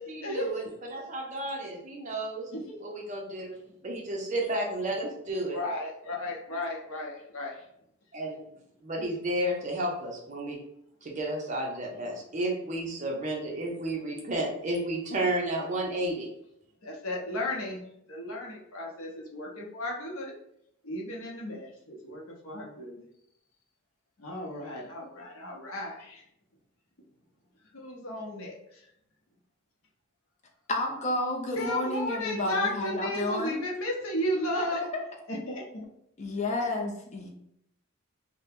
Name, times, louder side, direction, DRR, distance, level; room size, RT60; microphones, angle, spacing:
voice 1, 0.1-2.5 2.8-3.6 3.8-5.6 8.1-10.6 11.0-16.3, right 1 dB, 35° right, -1 dB, 0.5 m, -32 dB
voice 2, 5.5-7.6 16.8-17.8 18.1-20.3 20.8-23.0 24.2-26.2 27.7-28.8 31.5-34.8 35.3-35.9, left 1 dB, 75° left, -1 dB, 0.7 m, -34 dB
voice 3, 30.7-33.6 34.5-35.0 36.2-37.3, left 2 dB, 30° left, 0 dB, 0.5 m, -31 dB
2.7 x 2.1 x 3.4 m, 0.76 s
head